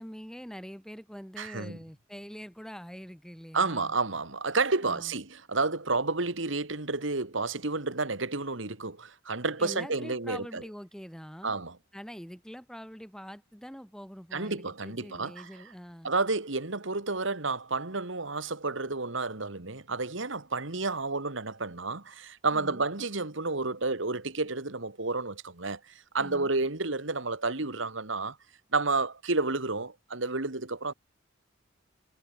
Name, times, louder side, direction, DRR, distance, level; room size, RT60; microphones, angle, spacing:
voice 1, 0.0-3.9 4.8-5.1 9.6-11.6 11.9-16.1 22.5-22.8 26.2-26.5, equal, 5° left, 4.2 m, -44 dB
voice 2, 1.4-1.8 3.5-10.6 11.4-11.8 14.3-15.5 16.0-25.8 26.1-28.4 28.7-30.9, right 3 dB, 65° right, 2.0 m, -30 dB
head